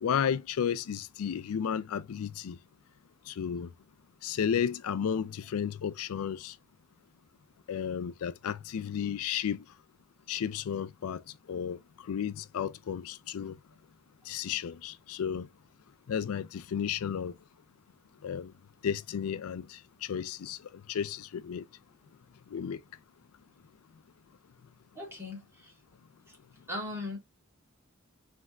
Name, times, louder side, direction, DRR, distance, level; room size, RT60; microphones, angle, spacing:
voice 1, 0.0-2.6 3.3-3.7 4.2-6.6 7.7-9.6 10.3-11.2 11.5-13.6 14.3-15.5 16.1-17.4 18.2-18.5 18.8-20.6 20.9-21.6 22.5-22.8, left 8 dB, 80° left, 0.4 m, -33 dB
voice 2, 25.0-25.7 26.3-26.4 26.7-27.2, left 2 dB, 10° right, 2.1 m, -38 dB
5.0 x 3.5 x 2.3 m
head